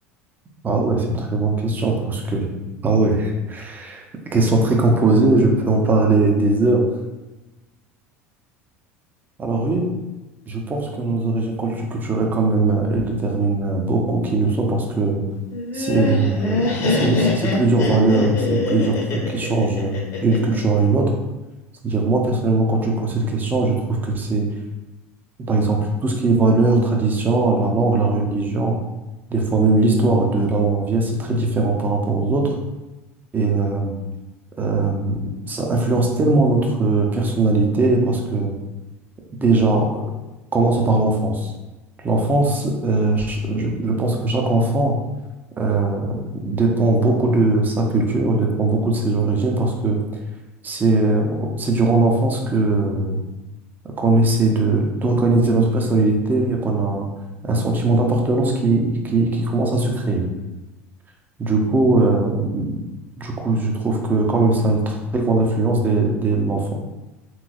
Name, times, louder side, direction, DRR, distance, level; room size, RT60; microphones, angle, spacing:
voice 1, 0.6-2.5 2.8-4.0 4.3-6.9 9.4-9.9 10.5-15.2 15.7-20.0 20.2-21.1 21.8-24.5 25.5-28.8 29.3-32.5 33.3-33.9 34.6-38.5 39.4-40.0 40.5-41.5 42.0-45.0 45.6-50.0 50.6-53.2 54.0-57.1 57.4-60.3 61.4-62.8 63.2-66.7, right 2 dB, 25° right, 1 dB, 0.7 m, -20 dB
Laughter, 15.5-20.6, left 2 dB, 40° left, 0.9 m, -23 dB
3.7 x 3.0 x 2.4 m, 1.1 s
figure-of-eight pair, 70°, 8 cm